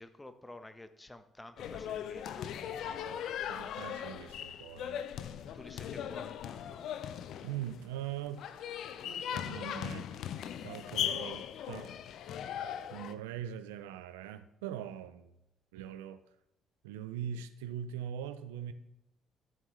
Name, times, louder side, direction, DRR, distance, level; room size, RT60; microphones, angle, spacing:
voice 1, 0.0-2.7 5.1-6.9, left 1 dB, 15° left, 10 dB, 1.0 m, -51 dB
sound 1, 1.6-13.1, left 9 dB, 65° left, 0.5 m, -39 dB
voice 2, 3.5-5.0 7.4-8.7 9.0-10.1 10.6-11.9 12.9-15.3 15.7-16.2 16.8-18.7, right 10 dB, 80° right, 11 dB, 0.5 m, -42 dB
12.0 x 7.1 x 3.2 m, 0.83 s
hypercardioid pair, 50°, 0 cm